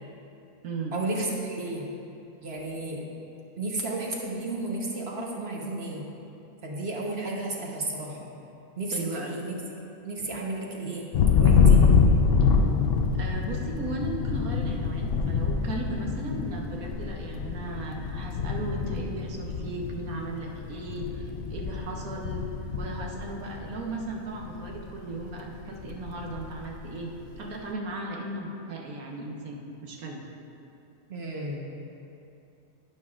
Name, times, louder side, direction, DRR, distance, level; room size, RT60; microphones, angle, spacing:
voice 1, 0.9-1.8 2.4-3.0 3.6-6.0 6.6-8.3 8.8-8.9 9.2-9.5 10.0-11.1 11.4-11.8 31.1-31.6, right 2 dB, 50° right, -2 dB, 1.3 m, -32 dB
voice 2, 8.9-9.3 13.2-22.5 22.8-30.2, right 2 dB, 85° right, 0 dB, 1.4 m, -36 dB
Thunder, 11.1-24.0 24.4-24.9 25.2-26.7, left 5 dB, 65° left, 0.6 m, -25 dB
11.0 x 9.0 x 2.5 m, 2.7 s
omnidirectional pair, 1.5 m